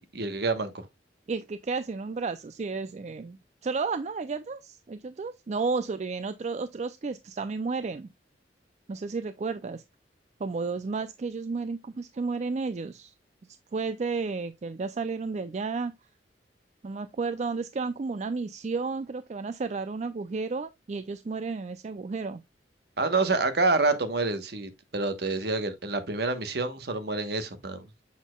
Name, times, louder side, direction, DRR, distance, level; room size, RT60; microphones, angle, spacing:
voice 1, 0.1-0.9 23.0-27.9, right 3 dB, 65° right, 1.1 m, -27 dB
voice 2, 1.3-8.1 8.9-9.8 10.4-13.1 13.7-15.9 16.8-22.4, right 4 dB, 40° right, 0.4 m, -32 dB
7.1 x 6.3 x 2.2 m
head